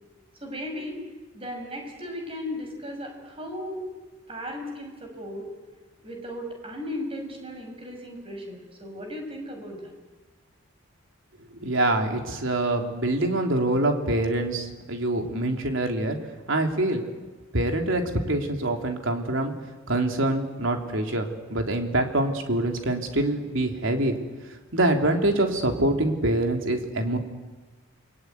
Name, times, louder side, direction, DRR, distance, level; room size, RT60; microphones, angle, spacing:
voice 1, 0.4-1.0 1.3-3.9 4.3-5.5 6.0-9.9, left 1 dB, 25° right, 3 dB, 6.1 m, -36 dB
voice 2, 11.6-16.2 16.5-17.0 17.5-18.0 18.3-19.5 19.9-24.2 24.7-27.2, right 1 dB, 70° right, 3 dB, 3.3 m, -25 dB
29.0 x 22.0 x 9.4 m, 1.3 s
head